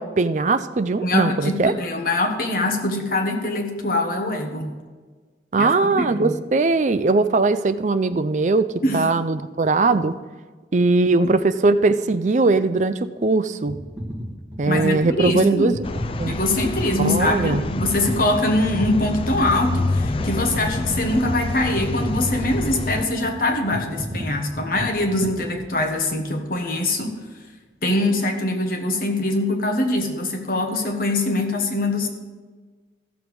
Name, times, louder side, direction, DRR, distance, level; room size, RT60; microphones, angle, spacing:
voice 1, 0.0-1.7 5.5-10.1 10.7-13.8 14.6-15.7 16.2-16.4 17.0-17.6, right 3 dB, 45° right, 11 dB, 0.5 m, -20 dB
voice 2, 1.0-4.7 5.6-6.4 8.8-9.1 14.7-15.8 16.3-27.2 27.8-32.1, left 1 dB, 50° left, 4 dB, 1.3 m, -23 dB
sound 1, 13.7-26.1 26.6-26.8, equal, 10° right, 1.6 m, -34 dB
sound 2, 15.8-23.1, left 3 dB, 30° left, 0.3 m, -28 dB
14.5 x 7.0 x 4.7 m, 1.4 s
head